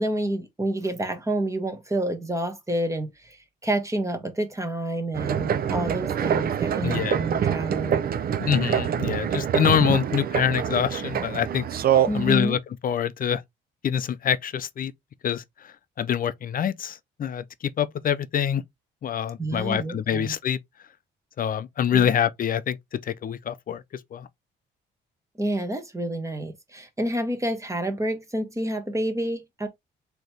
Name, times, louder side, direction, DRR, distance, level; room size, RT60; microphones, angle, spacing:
voice 1, 0.0-8.0 12.1-12.6 19.4-20.3 21.9-22.1 25.4-29.7, right 1 dB, 15° right, 1.3 m, -29 dB
sound 1, 5.1-12.3, right 9 dB, 50° right, 0.5 m, -25 dB
voice 2, 6.8-7.2 8.4-11.6 12.1-13.4 13.8-14.9 15.2-17.4 17.8-18.6 19.0-20.6 21.4-23.8 24.1-24.3, left 9 dB, 45° left, 0.5 m, -25 dB
3.8 x 3.0 x 3.4 m
cardioid pair, 90°, 20 cm